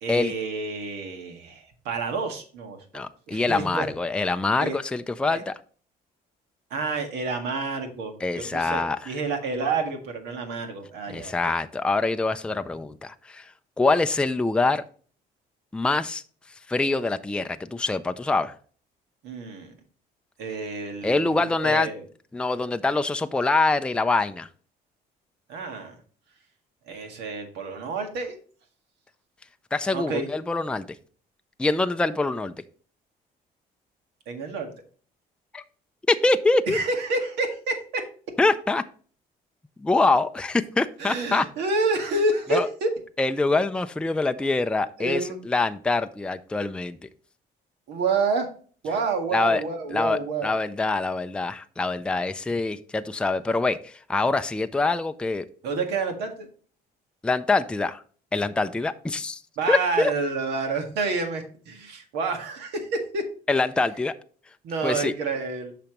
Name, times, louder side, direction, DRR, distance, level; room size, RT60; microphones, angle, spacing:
voice 1, 0.0-3.0 3.3-3.9 4.6-4.8 5.3-5.4 6.7-11.4 19.2-19.7 20.4-22.1 25.5-26.0 26.9-28.4 29.9-30.3 34.3-34.7 36.7-38.1 41.0-42.9 45.0-45.4 47.9-48.5 48.8-50.5 55.6-56.5 59.6-63.3 64.6-65.7, right 3 dB, 85° right, 4 dB, 1.8 m, -29 dB
voice 2, 2.9-5.5 8.2-9.1 11.1-13.5 13.8-14.8 15.7-16.2 16.7-18.5 21.0-21.9 22.3-24.5 29.7-30.8 31.6-32.5 35.5-35.6 36.1-36.8 38.4-38.8 39.8-41.4 42.5-42.7 43.2-47.1 49.3-49.6 49.9-55.5 57.2-58.0 58.3-59.4 59.7-60.1 63.5-64.1 64.8-65.1, left 3 dB, 5° left, 9 dB, 0.4 m, -24 dB
8.6 x 5.9 x 3.0 m, 0.43 s
cardioid pair, 110°, 17 cm